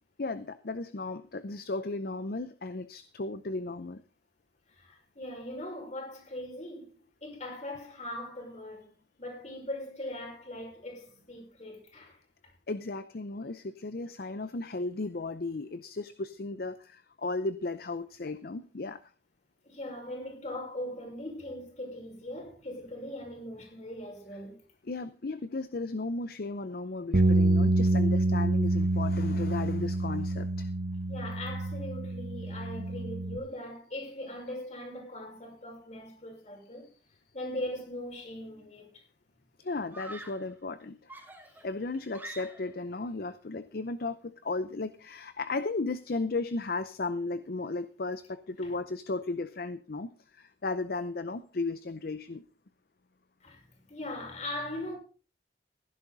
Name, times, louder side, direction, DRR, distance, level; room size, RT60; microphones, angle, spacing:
voice 1, 0.2-4.0 12.7-19.0 24.9-30.7 32.8-32.9 39.6-41.1 41.6-52.4, left 3 dB, 55° left, 0.6 m, -35 dB
voice 2, 4.7-12.2 19.7-24.6 31.1-36.9 37.3-39.0 48.6-48.7 53.4-54.9, left 1 dB, 40° left, 5.4 m, -40 dB
sound 1, 27.1-33.4, right 2 dB, 80° right, 1.0 m, -27 dB
Screaming, 38.4-38.8 39.9-40.5 41.1-42.8, right 1 dB, 10° right, 2.8 m, -46 dB
16.0 x 11.0 x 4.0 m
head